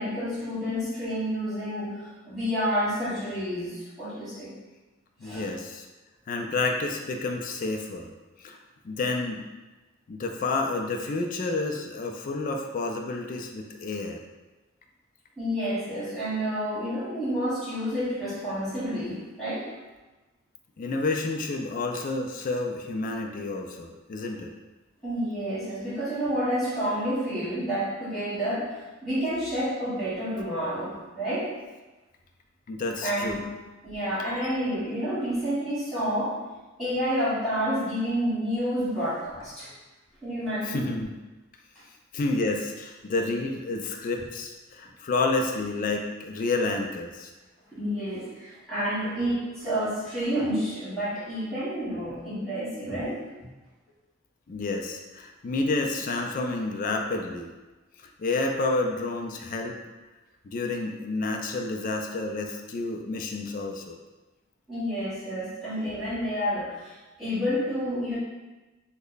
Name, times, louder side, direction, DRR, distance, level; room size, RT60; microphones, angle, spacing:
voice 1, 0.0-4.5 5.2-5.5 15.4-19.7 25.0-31.5 33.0-33.5 33.8-36.4 36.8-39.7 40.2-40.9 47.7-53.5 64.7-68.2, equal, ahead, -12 dB, 1.3 m, -29 dB
voice 2, 5.2-5.9 6.3-8.1 8.4-8.6 8.8-9.5 10.1-14.2 20.8-24.5 32.7-33.4 40.7-41.1 42.1-47.3 54.5-57.5 58.2-59.8 60.4-64.0, left 3 dB, 45° left, 3 dB, 0.3 m, -29 dB
3.1 x 2.1 x 3.9 m, 1.2 s
head